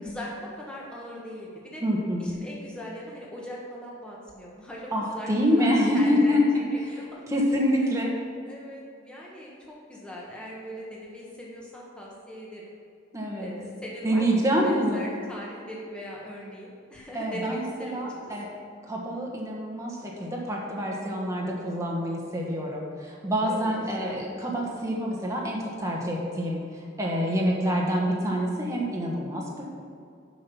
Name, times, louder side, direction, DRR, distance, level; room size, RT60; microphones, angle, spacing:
voice 1, 0.0-1.8 2.2-7.4 7.8-7.9 8.5-12.7 13.4-18.0 23.4-24.2, equal, 5° left, -4 dB, 1.1 m, -40 dB
voice 2, 1.8-2.2 4.9-6.4 7.3-8.1 13.1-13.5 14.0-15.0 17.1-18.5 18.9-26.6 27.0-29.6, equal, 15° right, -2 dB, 1.3 m, -26 dB
7.4 x 5.7 x 5.8 m, 2.4 s
head